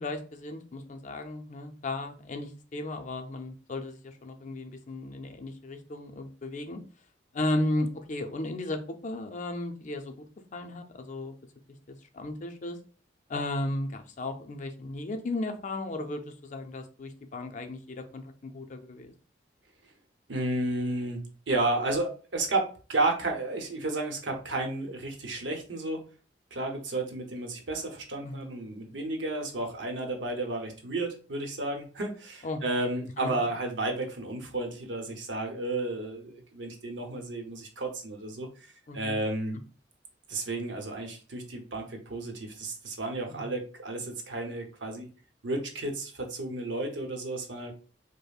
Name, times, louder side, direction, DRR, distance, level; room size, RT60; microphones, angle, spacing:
voice 1, 0.0-6.8 7.3-10.3 10.5-11.3 11.9-12.8 13.3-19.1 28.2-28.5 32.4-32.6 33.2-33.4 38.9-39.2 43.3-43.5, left 2 dB, 45° left, 5 dB, 0.5 m, -35 dB
voice 2, 20.3-26.0 26.5-39.6 40.3-45.1 45.4-47.7, right 2 dB, 90° right, 3 dB, 0.8 m, -32 dB
5.1 x 2.1 x 2.3 m, 0.37 s
head